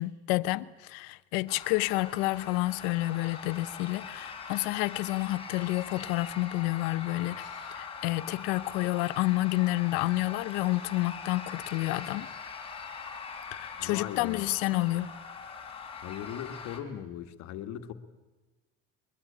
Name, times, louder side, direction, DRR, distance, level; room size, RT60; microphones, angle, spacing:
voice 1, 0.0-12.3 13.5-15.1, left 19 dB, 90° left, 0.8 m, -29 dB
sound 1, 1.5-16.8, left 5 dB, 20° left, 3.7 m, -42 dB
voice 2, 13.8-14.5 16.0-17.9, left 10 dB, 70° left, 1.7 m, -39 dB
22.0 x 21.5 x 8.6 m
cardioid pair, 125°, 29 cm